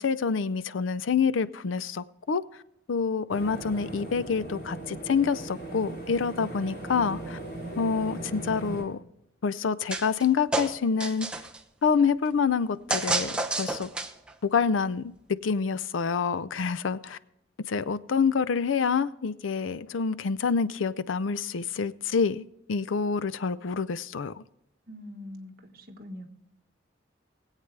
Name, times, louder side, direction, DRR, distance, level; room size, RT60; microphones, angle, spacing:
voice 1, 0.0-2.4 2.9-7.4 7.8-9.0 9.4-11.3 11.8-13.9 14.4-15.1 15.4-17.2 17.7-24.4, left 5 dB, 85° left, 0.5 m, -27 dB
sound 1, 3.3-8.8, right 2 dB, 55° left, 4.8 m, -38 dB
sound 2, 9.9-10.2 10.5-11.6 12.9-14.3, right 2 dB, 5° right, 0.8 m, -29 dB
voice 2, 24.9-26.3, left 1 dB, 50° right, 1.4 m, -43 dB
20.5 x 8.3 x 3.3 m
head